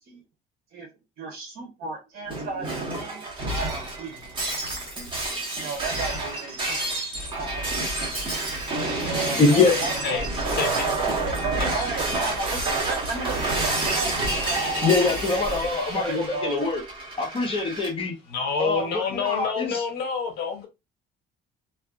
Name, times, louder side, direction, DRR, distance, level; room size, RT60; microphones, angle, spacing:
voice 1, 1.2-4.2 5.5-6.8 7.3-7.7 8.0-8.4 9.0-10.2 10.6-10.7 11.2-14.9 16.0-16.6, right 4 dB, 65° right, 0.7 m, -35 dB
Shatter, 2.3-17.9, right 2 dB, 30° right, 1.2 m, -28 dB
voice 2, 9.1-9.8 14.8-16.8 17.2-18.1 18.6-19.8, left 4 dB, 30° left, 0.9 m, -23 dB
voice 3, 10.6-10.9 11.6-11.9 18.3-20.7, left 6 dB, 75° left, 0.7 m, -28 dB
2.5 x 2.5 x 2.3 m
cardioid pair, 110°, 17 cm